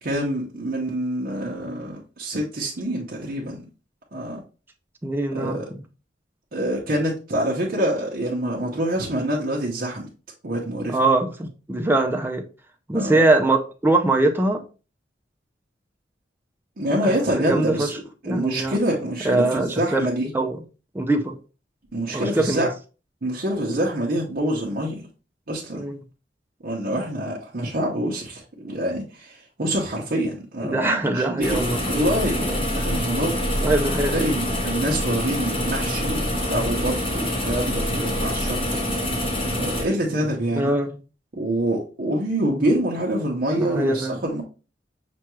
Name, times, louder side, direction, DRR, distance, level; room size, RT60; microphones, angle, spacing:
voice 1, 0.0-3.6 4.1-4.4 5.3-5.7 6.5-10.1 10.4-11.0 12.9-13.2 16.8-20.3 21.9-22.7 23.2-25.0 25.5-26.0 26.6-31.6 31.9-32.4 32.7-33.6 34.1-38.6 39.6-40.7 41.3-44.4, right 1 dB, 50° right, 0.8 m, -26 dB
voice 2, 5.0-5.8 10.9-12.4 12.9-14.6 17.0-17.9 18.3-18.8 19.2-20.0 20.3-20.6 20.9-21.4 22.1-22.7 25.7-26.0 30.6-31.8 32.4-32.6 33.6-34.1 40.6-41.0 43.5-44.2, right 2 dB, 10° right, 0.4 m, -22 dB
sound 1, 31.4-39.8, equal, 30° left, 1.0 m, -25 dB
6.0 x 2.3 x 3.0 m
head